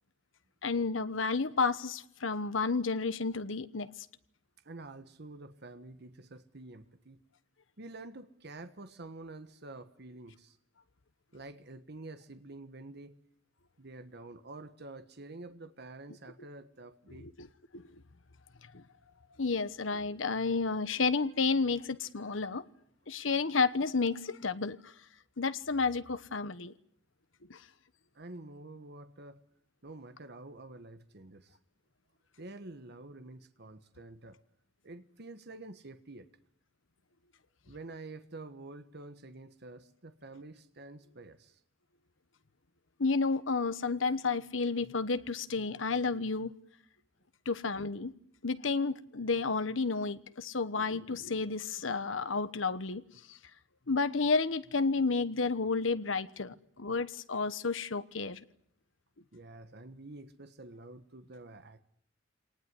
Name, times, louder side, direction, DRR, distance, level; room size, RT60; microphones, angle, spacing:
voice 1, 0.6-3.9 17.2-17.5 17.7-17.8 18.7-18.8 19.4-22.6 23.1-24.9 25.4-26.7 27.5-27.6 43.0-46.5 47.4-48.1 48.4-53.0 53.3-53.4 53.9-58.4, left 4 dB, 85° left, 1.1 m, -31 dB
voice 2, 4.6-7.2 7.8-10.6 11.3-13.2 13.8-17.3 28.1-29.4 29.8-31.6 32.4-34.4 34.8-36.3 37.7-41.6 56.5-56.6 59.3-61.8, right 2 dB, 60° right, 1.4 m, -48 dB
25.0 x 19.5 x 9.7 m
head